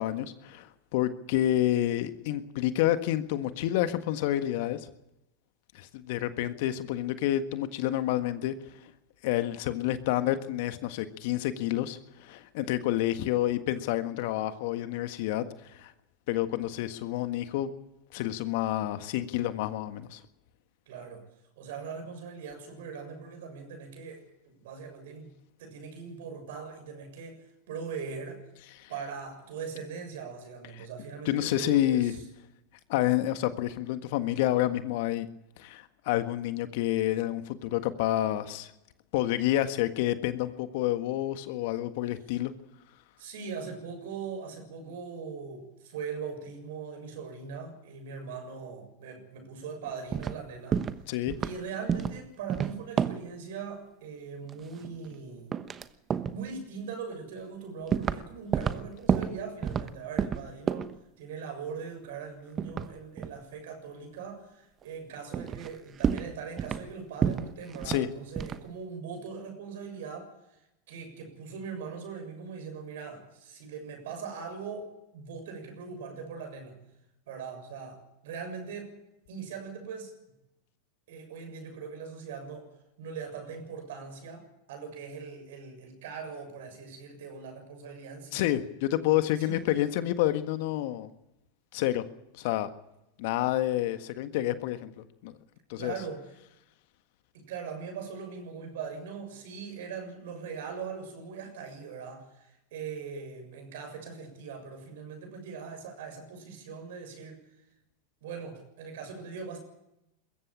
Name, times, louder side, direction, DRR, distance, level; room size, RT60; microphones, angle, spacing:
voice 1, 0.0-4.9 5.7-8.6 8.8-8.9 9.2-15.9 16.3-17.7 18.1-20.2 28.8-28.9 31.2-32.1 32.9-35.3 35.6-38.7 39.1-42.5 51.1-51.4 67.8-68.1 88.3-91.1 91.7-92.0 92.3-92.7 93.2-95.4 95.7-95.9, left 13 dB, 60° left, 10 dB, 1.6 m, -29 dB
voice 2, 20.9-21.2 21.6-25.3 25.6-28.4 28.9-32.2 43.2-50.9 51.4-55.6 56.3-60.9 61.2-76.8 77.3-79.0 79.3-80.2 81.1-82.7 83.0-88.4 89.4-89.8 95.8-96.3 97.3-107.4 108.2-109.6, right 5 dB, 65° right, 6 dB, 7.0 m, -41 dB
sound 1, 49.8-50.4 50.7-51.0 51.3-51.6 51.9-52.2 52.5-53.3 54.5-55.2 55.5-55.8 56.1-56.4 57.1-57.2 57.9-58.2 58.5-59.9 60.2-61.0 62.6-63.4 64.8-64.9 65.3-65.7 66.0-66.9 67.2-68.1 68.4-68.6, right 7 dB, 30° right, 1.1 m, -30 dB
21.5 x 15.0 x 8.7 m, 0.87 s
hypercardioid pair, 95°, 0 cm